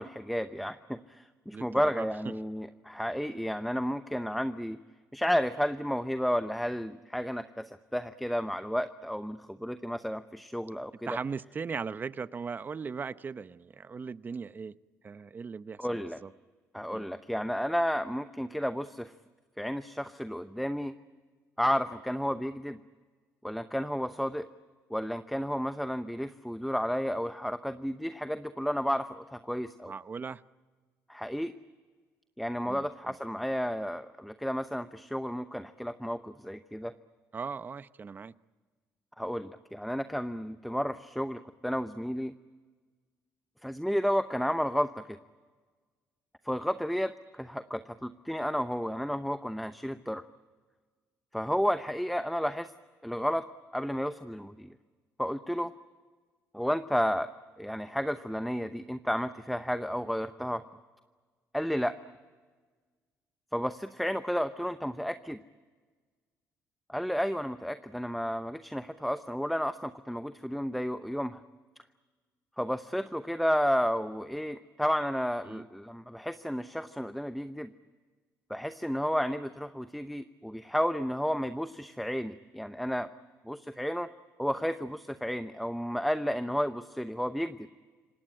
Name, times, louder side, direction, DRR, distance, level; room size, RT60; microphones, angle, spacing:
voice 1, 0.0-4.8 5.1-11.2 15.8-16.2 16.7-19.1 19.6-20.9 21.6-22.8 23.4-24.5 24.9-29.9 31.1-31.5 32.4-36.9 39.2-42.3 43.6-45.2 46.4-50.2 51.3-52.7 53.0-53.4 53.7-54.7 55.2-55.7 56.5-57.3 57.6-60.6 61.5-61.9 63.5-65.4 66.9-71.4 72.6-77.7 78.5-83.1 83.4-84.1 84.4-87.7, equal, ahead, 10 dB, 0.8 m, -32 dB
voice 2, 1.5-2.3 11.1-14.7 15.0-16.3 16.9-17.0 29.9-30.4 32.6-33.2 37.3-38.3 75.4-75.7, right 5 dB, 35° right, 15 dB, 0.8 m, -38 dB
26.5 x 18.5 x 10.0 m, 1.4 s
cardioid pair, 90°, 6 cm